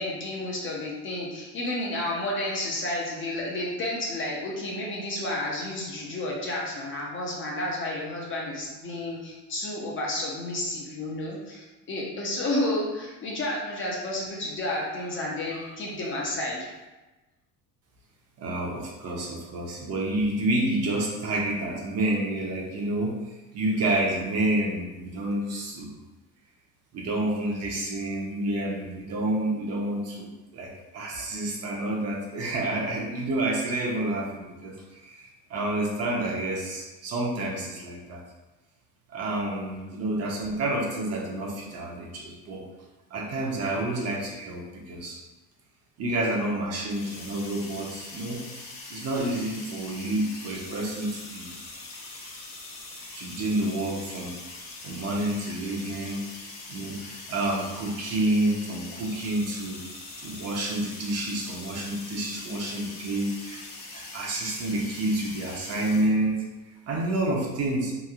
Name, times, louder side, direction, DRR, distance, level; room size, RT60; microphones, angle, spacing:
voice 1, 0.0-16.7, left 1 dB, 30° left, -3 dB, 0.5 m, -31 dB
voice 2, 18.4-25.9 26.9-38.2 39.1-42.7 43.1-45.2 46.0-48.4 48.9-51.5 53.1-54.4 54.8-56.3 56.7-59.8 60.2-63.7 63.9-66.5 66.9-67.9, right 1 dB, 40° right, -1 dB, 0.6 m, -29 dB
sound 1, 46.9-66.1, left 2 dB, 60° left, 0.8 m, -42 dB
3.0 x 2.5 x 2.4 m, 1.1 s
cardioid pair, 135°, 40 cm